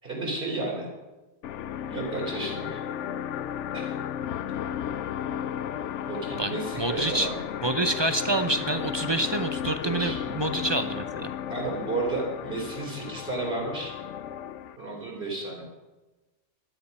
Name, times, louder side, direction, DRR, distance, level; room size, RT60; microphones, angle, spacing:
voice 1, 0.0-0.9 1.8-2.8 3.7-4.0 6.0-7.4 9.8-10.2 10.5-10.6 11.5-13.9 14.8-15.6, right 2 dB, 50° right, -2 dB, 4.0 m, -32 dB
sound 1, 1.4-14.8, left 9 dB, 90° left, 0.9 m, -34 dB
voice 2, 6.8-7.3 7.6-11.3, right 2 dB, 30° right, 9 dB, 0.5 m, -27 dB
13.0 x 10.0 x 5.3 m, 1.2 s
omnidirectional pair, 1.2 m